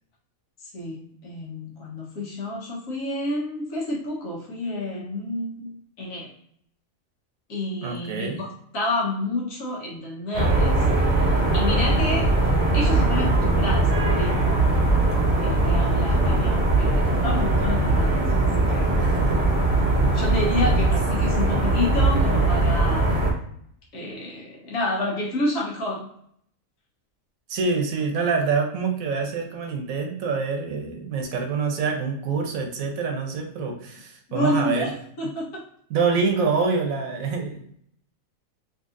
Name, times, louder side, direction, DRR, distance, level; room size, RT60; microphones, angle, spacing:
voice 1, 0.7-5.7 6.0-6.3 7.5-8.5 8.7-10.8 11.5-12.3 12.7-14.9 15.4-18.9 20.1-23.4 23.9-26.1 34.3-35.6, left 1 dB, 75° left, -4 dB, 1.5 m, -29 dB
voice 2, 7.8-8.4 18.9-19.4 27.5-34.9 35.9-37.8, right 4 dB, 80° right, 2 dB, 1.2 m, -26 dB
sound 1, 10.3-23.3, right 2 dB, 30° right, 0.9 m, -20 dB
3.9 x 2.8 x 2.5 m, 0.68 s
omnidirectional pair, 1.4 m